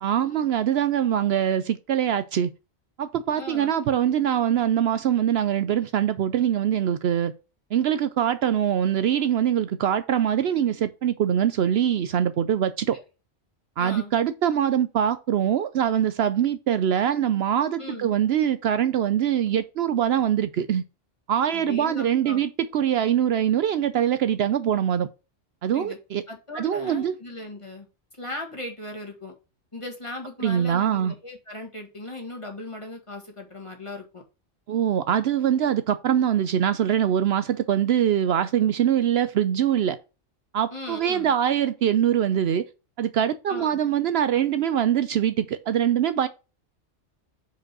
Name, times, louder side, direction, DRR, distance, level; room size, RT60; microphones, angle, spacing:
voice 1, 0.0-2.5 3.0-7.3 7.7-13.0 13.8-20.8 21.3-25.1 25.6-26.2 26.5-27.2 30.4-31.1 34.7-40.0 40.5-42.7 43.0-46.3, right 9 dB, 70° right, 0.8 m, -23 dB
voice 2, 3.4-3.7 12.9-13.0 13.8-14.1 17.8-18.1 21.5-22.4 25.7-26.0 26.3-27.9 28.2-29.3 29.7-34.2 40.7-41.3 43.5-43.8, left 2 dB, 25° left, 2.0 m, -38 dB
5.2 x 5.1 x 6.0 m
omnidirectional pair, 1.2 m